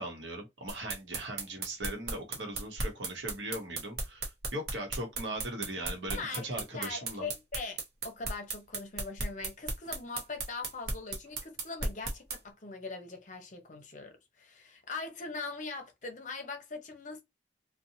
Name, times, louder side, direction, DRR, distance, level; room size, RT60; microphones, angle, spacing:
voice 1, 0.0-7.3, right 1 dB, 85° right, 1.0 m, -39 dB
sound 1, 0.7-12.4, right 3 dB, 60° right, 0.8 m, -35 dB
voice 2, 6.1-7.8 8.0-17.2, left 4 dB, 45° left, 0.7 m, -41 dB
2.7 x 2.2 x 2.6 m
head